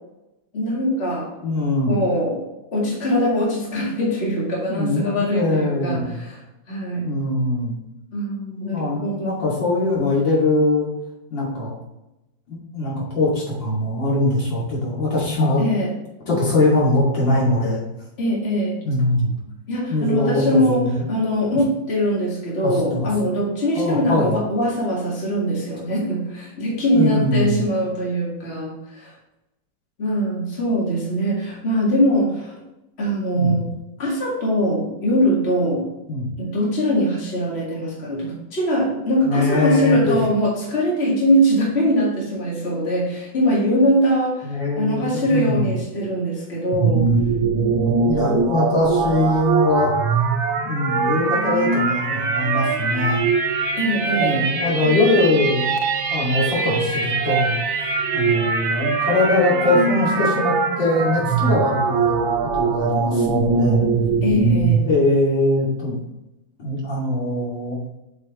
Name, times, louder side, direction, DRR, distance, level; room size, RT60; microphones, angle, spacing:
voice 1, 0.5-1.3 1.9-2.4 2.7-6.4 6.7-7.1 8.1-9.4 15.6-15.9 18.2-18.8 19.7-29.1 30.0-32.5 33.0-33.7 34.0-35.9 36.4-47.1 53.8-54.5 54.9-55.0 64.2-64.9, equal, 35° left, -5 dB, 2.2 m, -22 dB
voice 2, 1.4-2.0 4.7-6.2 7.0-7.8 8.6-10.9 11.3-11.8 12.5-15.6 16.3-17.8 18.8-19.4 19.9-21.0 22.6-23.3 23.7-24.4 26.9-27.6 33.3-33.6 36.1-36.3 39.3-40.2 44.4-45.7 47.8-49.9 50.6-53.3 54.1-55.8 56.1-57.6 58.1-63.9 64.8-66.0 66.6-67.8, left 2 dB, 70° left, -6 dB, 3.2 m, -22 dB
sound 1, 46.7-64.9, right 4 dB, 85° right, 1.7 m, -22 dB
7.7 x 5.6 x 3.1 m, 0.95 s
omnidirectional pair, 2.1 m